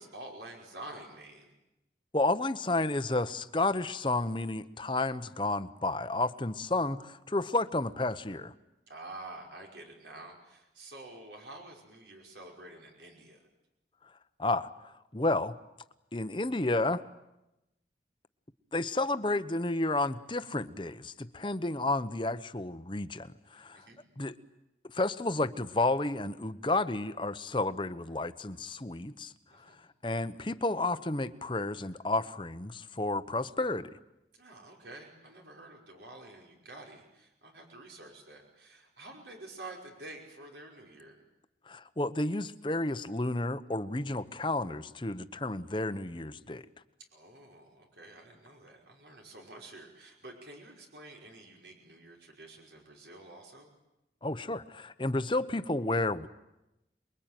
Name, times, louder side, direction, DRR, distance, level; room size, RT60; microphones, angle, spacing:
voice 1, 0.0-1.5 8.9-13.4 23.5-24.0 29.5-29.8 34.3-41.2 47.1-53.7, right 2 dB, 80° right, 1 dB, 5.5 m, -49 dB
voice 2, 2.1-8.5 14.4-14.7 15.1-15.6 16.1-17.0 18.7-23.8 24.2-24.3 24.8-29.3 30.0-33.9 41.7-46.7 54.2-56.3, left 2 dB, 30° left, 11 dB, 1.0 m, -31 dB
28.5 x 22.5 x 9.2 m, 0.93 s
head